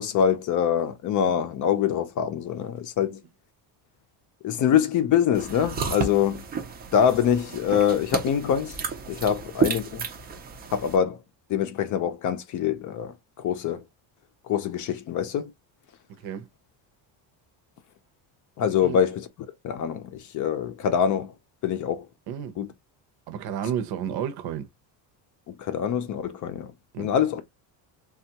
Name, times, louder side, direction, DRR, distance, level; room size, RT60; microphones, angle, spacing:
voice 1, 0.0-3.2 4.4-6.4 6.9-8.8 9.1-10.0 10.7-11.2 11.5-13.1 13.4-13.8 14.5-15.5 18.6-19.3 19.6-21.3 21.6-22.0 22.6-22.7 25.5-26.7 27.0-27.4, left 8 dB, 45° left, 0.5 m, -24 dB
sound 1, 5.3-11.0, right 5 dB, 20° right, 0.5 m, -32 dB
voice 2, 16.2-16.5 18.8-19.0 22.3-22.5 23.3-24.7 26.9-27.1, right 9 dB, 60° right, 0.8 m, -31 dB
3.4 x 2.4 x 2.8 m
cardioid pair, 150°, 44 cm